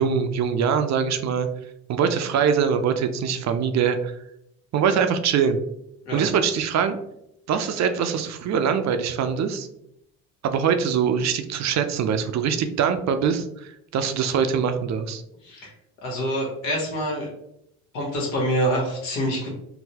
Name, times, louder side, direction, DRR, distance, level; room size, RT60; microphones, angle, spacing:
voice 1, 0.0-1.5 1.9-4.2 4.7-5.6 6.1-7.0 7.5-9.7 10.4-15.2, right 7 dB, 45° right, 8 dB, 0.4 m, -23 dB
voice 2, 16.0-17.3 17.9-19.5, equal, 85° left, -1 dB, 1.2 m, -26 dB
3.8 x 2.1 x 2.8 m, 0.78 s
hypercardioid pair, 65°, 40 cm